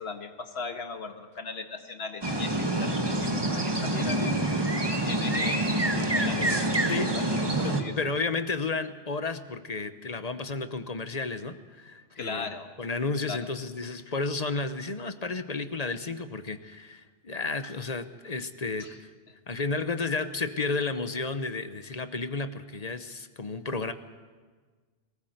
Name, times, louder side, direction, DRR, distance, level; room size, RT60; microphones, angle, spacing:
voice 1, 0.0-4.6 5.0-6.7 7.0-8.1 12.2-12.7 13.3-13.5 18.8-19.0, left 4 dB, 75° left, 6 dB, 1.7 m, -38 dB
sound 1, 2.2-7.8, right 1 dB, 25° right, 1.6 m, -26 dB
voice 2, 8.0-12.5 12.8-19.0 19.5-23.9, left 3 dB, 40° left, 10 dB, 0.9 m, -32 dB
22.5 x 14.5 x 7.9 m, 1.4 s
omnidirectional pair, 1.1 m